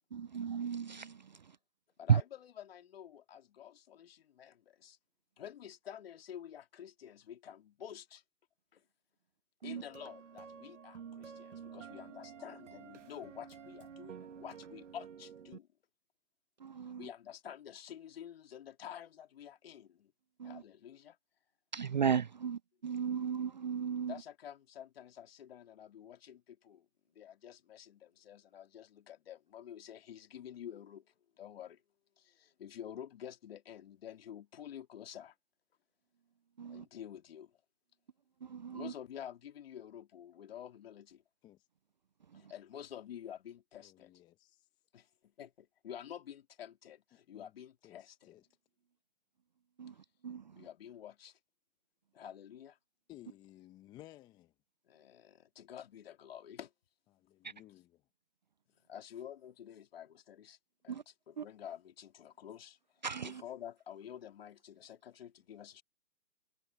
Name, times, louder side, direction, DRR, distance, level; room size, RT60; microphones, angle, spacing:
voice 1, 0.1-1.3 2.1-2.2 9.6-9.8 16.6-17.1 20.4-20.6 21.7-24.1 36.6-36.8 38.4-38.9 42.3-42.4 49.8-49.9 50.2-50.6 60.9-61.0 61.4-61.5 63.0-63.4, right 7 dB, 35° right, 0.5 m, -34 dB
voice 2, 2.0-5.0 5.4-8.2 8.7-8.8 9.6-15.7 16.9-20.1 20.4-21.2 24.0-26.9 27.1-31.8 32.2-35.3 36.6-37.6 38.7-41.2 42.3-44.1 44.9-48.4 50.5-51.4 52.1-52.8 54.9-56.7 58.9-60.6 60.8-65.8, left 9 dB, 45° left, 3.0 m, -49 dB
sound 1, 9.8-15.6, right 7 dB, 60° right, 2.0 m, -50 dB
voice 3, 43.8-44.7 47.3-47.5 47.8-48.4 53.1-54.5 57.1-58.0, left 15 dB, 10° left, 1.0 m, -57 dB
hypercardioid pair, 145°, 40 cm